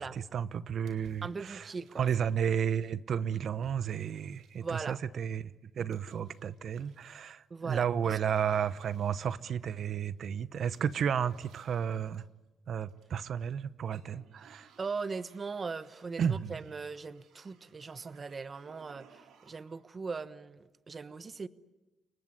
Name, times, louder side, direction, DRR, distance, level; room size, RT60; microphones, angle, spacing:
voice 1, 0.3-1.7 2.0-12.2 12.7-14.7 16.2-16.7, right 8 dB, 60° right, 0.9 m, -32 dB
sound 1, 0.9-2.7 3.6-4.9 5.9-7.3 8.4-10.1 10.7-12.3 12.9-13.5 13.8-19.8, right 5 dB, 80° right, 4.2 m, -61 dB
voice 2, 1.2-2.1 4.6-5.0 7.5-8.2 14.8-21.5, right 4 dB, 35° right, 1.1 m, -39 dB
30.0 x 19.0 x 9.9 m
cardioid pair, 90°, 0 cm